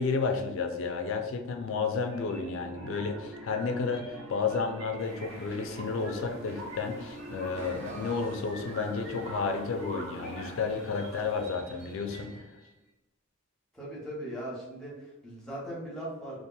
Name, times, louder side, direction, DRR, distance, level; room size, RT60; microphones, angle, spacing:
voice 1, 0.0-12.5, left 4 dB, 70° left, 5 dB, 0.4 m, -32 dB
sound 1, 2.1-12.7, right 1 dB, 90° right, 1.3 m, -44 dB
sound 2, 5.0-11.5, equal, 70° right, 1.0 m, -53 dB
sound 3, 5.6-12.4, right 1 dB, 35° right, 0.5 m, -49 dB
voice 2, 13.7-16.4, right 1 dB, 5° left, -6 dB, 0.7 m, -39 dB
2.8 x 2.4 x 2.2 m, 1.0 s
head